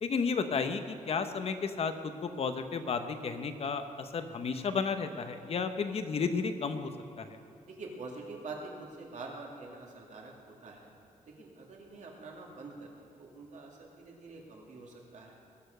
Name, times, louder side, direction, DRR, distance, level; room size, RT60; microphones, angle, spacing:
voice 1, 0.0-6.9 7.2-7.4, left 5 dB, 45° left, 9 dB, 0.8 m, -33 dB
voice 2, 7.6-10.3 10.6-10.9 11.2-15.4, right 3 dB, 60° right, -1 dB, 2.4 m, -46 dB
20.0 x 7.0 x 6.5 m, 2.6 s
wide cardioid pair, 160°, 14 cm